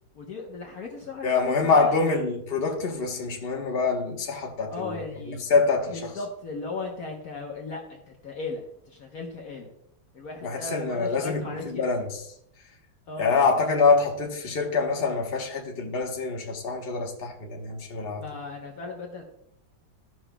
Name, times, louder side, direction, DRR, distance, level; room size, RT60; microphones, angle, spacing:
voice 1, 0.1-1.9 4.7-5.4 5.9-9.7 10.1-11.9 13.1-13.5 18.2-19.2, left 3 dB, 55° left, 1.3 m, -37 dB
voice 2, 1.2-5.0 5.5-6.1 10.4-12.2 13.2-18.2, left 4 dB, 35° left, 1.2 m, -25 dB
14.0 x 6.0 x 2.2 m
omnidirectional pair, 2.0 m